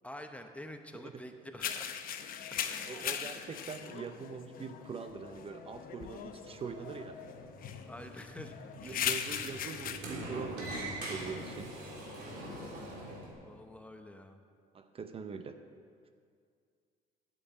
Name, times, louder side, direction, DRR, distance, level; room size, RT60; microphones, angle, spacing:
voice 1, 0.0-2.0 2.5-3.0 3.5-3.6 7.9-9.1 13.4-14.4, left 1 dB, 10° left, 6 dB, 0.7 m, -48 dB
sound 1, 1.6-10.0, left 9 dB, 60° left, 0.8 m, -39 dB
voice 2, 2.8-7.2 8.8-11.8 14.7-15.6, right 5 dB, 35° right, 8 dB, 0.7 m, -43 dB
Sliding door, 6.3-13.3, right 1 dB, 75° right, 3.2 m, -44 dB
8.6 x 7.8 x 8.7 m, 2.2 s
cardioid pair, 110°, 17 cm